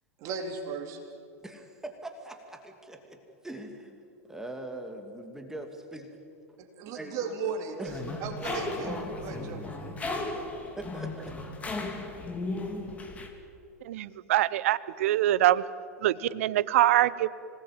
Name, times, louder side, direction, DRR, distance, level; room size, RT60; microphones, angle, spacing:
voice 1, 0.2-1.0 6.6-7.9 8.2-9.8 10.2-10.4, right 5 dB, 40° right, 3 dB, 3.8 m, -36 dB
voice 2, 1.4-4.0 4.2-6.2 6.9-7.3 7.8-8.2 10.8-11.4, right 1 dB, 5° right, 4 dB, 2.6 m, -42 dB
sound 1, 7.9-13.3, left 2 dB, 15° left, 3.2 m, -35 dB
voice 3, 13.8-15.6 16.0-17.3, right 14 dB, 60° right, 18 dB, 0.9 m, -24 dB
26.0 x 19.5 x 8.9 m, 2.6 s
hypercardioid pair, 100°, 8 cm